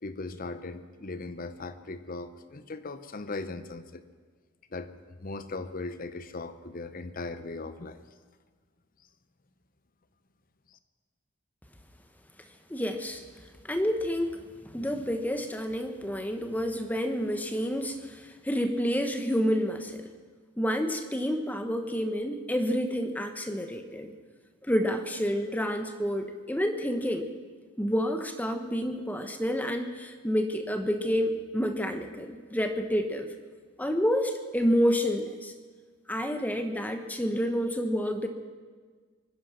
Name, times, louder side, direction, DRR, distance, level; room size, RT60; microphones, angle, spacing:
voice 1, 0.0-4.0 4.7-4.9 5.2-8.0, left 3 dB, 45° left, 11 dB, 0.8 m, -38 dB
voice 2, 12.7-13.2 13.6-14.4 14.6-20.1 20.6-24.1 24.7-27.3 27.8-33.3 33.8-35.5 36.1-38.3, equal, 10° left, 7 dB, 1.0 m, -29 dB
24.0 x 10.5 x 5.8 m, 1.5 s
head